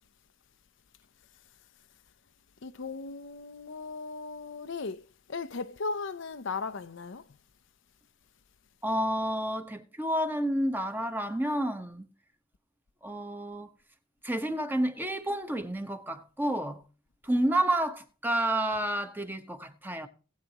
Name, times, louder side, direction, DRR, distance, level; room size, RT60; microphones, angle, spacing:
voice 1, 2.6-5.0 5.3-7.2, left 4 dB, 65° left, 0.7 m, -37 dB
voice 2, 8.8-12.1 13.0-13.7 14.2-16.8 17.2-20.1, right 1 dB, 10° right, 1.2 m, -30 dB
19.0 x 8.4 x 2.9 m
head